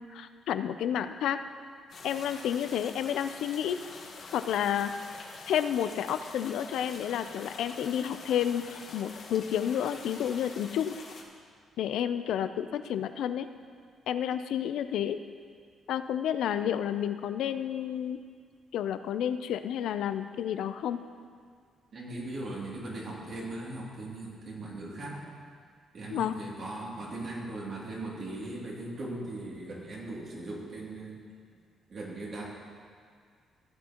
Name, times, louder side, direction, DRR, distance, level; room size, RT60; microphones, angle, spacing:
voice 1, 0.0-1.4 2.0-3.8 4.3-4.9 5.5-11.0 11.8-13.5 14.1-15.2 15.9-18.2 18.7-21.0 26.1-26.3, left 9 dB, 80° left, 10 dB, 0.4 m, -30 dB
sound 1, 1.9-11.2, left 4 dB, 55° left, 1.4 m, -46 dB
voice 2, 21.9-25.3 25.9-31.3 31.9-32.4, right 2 dB, 50° right, -4 dB, 2.6 m, -39 dB
16.0 x 8.7 x 2.9 m, 2.1 s
cardioid pair, 125°, 0 cm